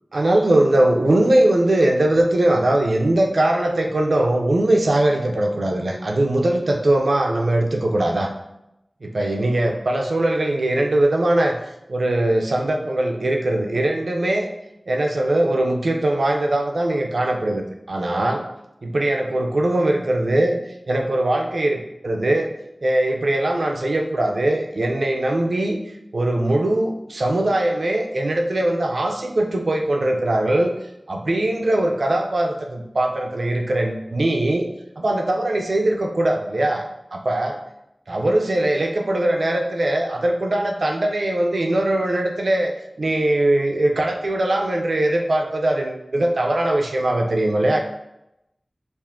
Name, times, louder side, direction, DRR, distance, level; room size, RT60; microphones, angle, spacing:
voice 1, 0.1-8.3 9.0-11.6 11.9-14.5 14.9-18.4 18.8-20.6 20.9-22.5 22.8-25.8 26.1-30.7 31.1-34.7 35.0-36.9 37.1-37.6 38.1-42.7 43.0-47.8, right 1 dB, 80° right, 2 dB, 0.4 m, -21 dB
3.5 x 2.4 x 3.5 m, 0.86 s
wide cardioid pair, 60°, 0 cm